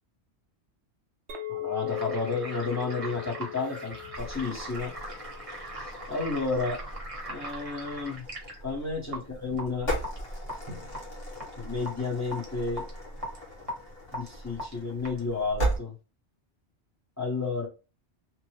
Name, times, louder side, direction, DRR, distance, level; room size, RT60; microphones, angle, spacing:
Chink clink, 1.3-5.8, left 14 dB, 85° right, 0.9 m, -39 dB
voice 1, 1.5-4.9 6.1-6.8 7.3-8.2 8.6-9.9 11.6-12.8 14.1-15.9 17.2-17.7, left 4 dB, 15° left, -1 dB, 0.7 m, -31 dB
sound 1, 1.9-15.5, right 1 dB, 35° right, 0.8 m, -41 dB
sound 2, 4.2-15.8, right 1 dB, 65° left, 1.6 m, -37 dB
2.9 x 2.1 x 3.0 m, 0.31 s
omnidirectional pair, 1.1 m